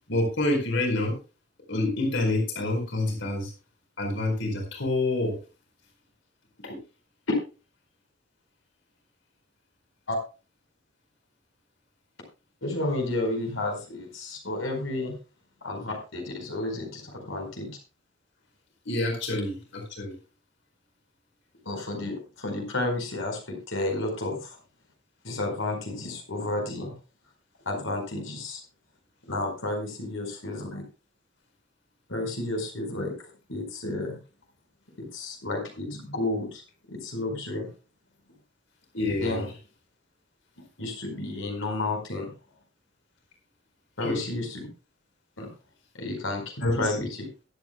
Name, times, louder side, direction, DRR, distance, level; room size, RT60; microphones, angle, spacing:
voice 1, 0.1-1.1 1.7-3.5 4.0-5.4 6.6-6.8 18.9-20.1 38.9-39.4 44.0-44.2 46.6-46.8, left 2 dB, 65° left, 2 dB, 4.4 m, -27 dB
voice 2, 12.6-15.1 15.6-17.8 21.6-24.6 25.2-26.9 27.7-28.6 29.3-30.8 32.1-34.2 35.0-36.6 36.9-37.7 39.2-39.5 40.8-42.3 44.0-44.7 45.4-45.5 45.9-47.3, left 2 dB, 85° left, 2 dB, 4.6 m, -31 dB
21.5 x 8.6 x 2.3 m, 0.32 s
head